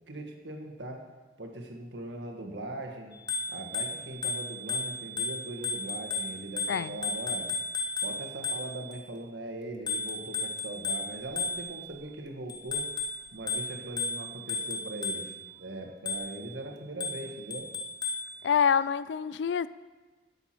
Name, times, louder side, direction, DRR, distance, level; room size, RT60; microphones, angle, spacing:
voice 1, 0.1-1.0 1.4-3.1 3.5-7.5 8.0-12.8 13.3-15.3 15.6-17.7, right 1 dB, 85° right, 2 dB, 1.5 m, -40 dB
Bicycle bell, 3.1-9.0 9.9-12.0 12.5-15.5 16.1-16.5 17.0-18.3, left 3 dB, 25° left, 0.9 m, -34 dB
voice 2, 6.7-7.0 18.4-19.7, left 7 dB, 80° left, 17 dB, 0.3 m, -26 dB
13.0 x 6.9 x 4.4 m, 1.3 s
head